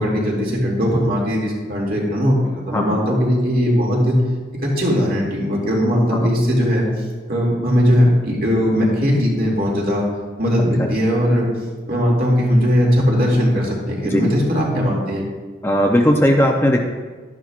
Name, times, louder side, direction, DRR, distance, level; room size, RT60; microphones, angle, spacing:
voice 1, 0.0-4.2 4.6-6.9 7.3-10.1 10.4-11.5 11.9-15.2, equal, 50° right, -3 dB, 2.5 m, -18 dB
voice 2, 15.6-16.8, equal, 15° left, 1 dB, 0.6 m, -17 dB
12.5 x 10.5 x 2.5 m, 1.4 s
head